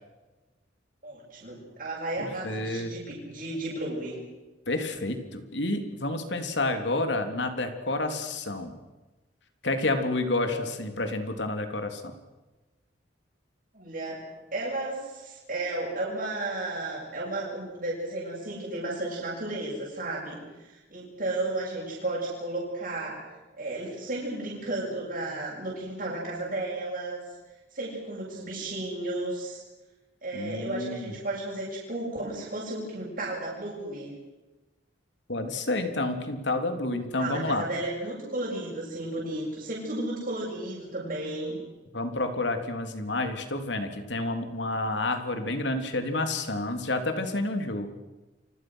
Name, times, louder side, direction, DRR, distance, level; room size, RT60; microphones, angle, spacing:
voice 1, 1.0-4.2 10.5-10.7 13.7-14.2 14.5-23.3 23.6-27.2 27.7-29.6 30.2-34.1 37.2-41.6, right 2 dB, 50° right, -5 dB, 8.0 m, -33 dB
voice 2, 2.2-3.0 4.7-8.7 9.6-12.1 30.3-31.1 35.3-37.6 41.9-47.9, left 2 dB, 70° left, 6 dB, 3.3 m, -29 dB
29.5 x 25.5 x 6.4 m, 1.1 s
head